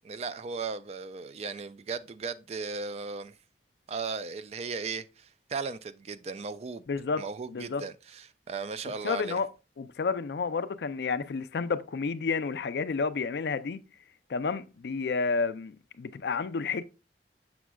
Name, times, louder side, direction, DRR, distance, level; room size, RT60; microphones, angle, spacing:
voice 1, 0.0-3.3 3.9-6.8 7.2-9.4, right 4 dB, 35° right, 0.3 m, -36 dB
voice 2, 6.9-7.8 9.0-9.5 9.8-13.8 14.3-16.8, left 4 dB, 65° left, 0.4 m, -30 dB
7.1 x 6.1 x 2.3 m
head